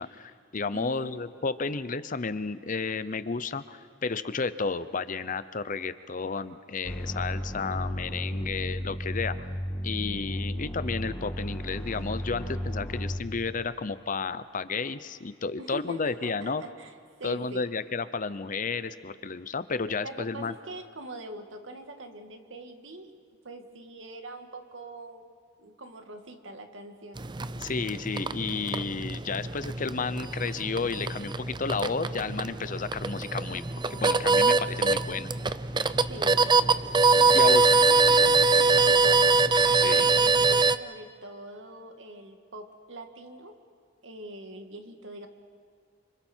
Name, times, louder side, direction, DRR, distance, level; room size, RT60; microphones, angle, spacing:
voice 1, 0.0-9.5 9.8-16.6 17.2-20.5 27.6-33.6 33.9-35.3 37.3-37.7 39.8-40.1, left 4 dB, 45° left, 14 dB, 0.7 m, -32 dB
voice 2, 0.7-1.3 15.6-16.9 17.2-17.6 20.0-23.1 23.4-25.3 25.6-27.2 36.1-36.8 37.2-39.3 39.9-43.6 44.0-45.3, right 2 dB, 85° right, 5 dB, 2.0 m, -43 dB
sound 1, 6.8-13.2, equal, 10° left, 2.5 m, -34 dB
sound 2, 27.2-40.8, right 3 dB, 25° right, 0.5 m, -23 dB
30.0 x 26.0 x 4.5 m, 2.3 s
head